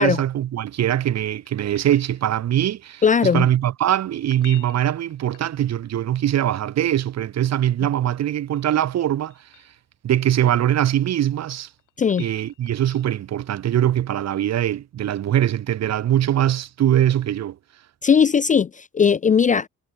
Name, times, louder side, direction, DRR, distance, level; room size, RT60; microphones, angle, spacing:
voice 1, 0.0-9.3 10.0-11.7 12.2-17.6, right 11 dB, 60° right, 1.1 m, -22 dB
sound 1, 1.4-2.7 4.1-6.0 8.1-9.8 11.2-13.3 16.0-16.1, left 13 dB, 90° left, 3.0 m, -49 dB
voice 2, 3.0-3.5 12.0-12.3 18.0-19.7, left 6 dB, 25° left, 0.4 m, -18 dB
cardioid pair, 145°, 31 cm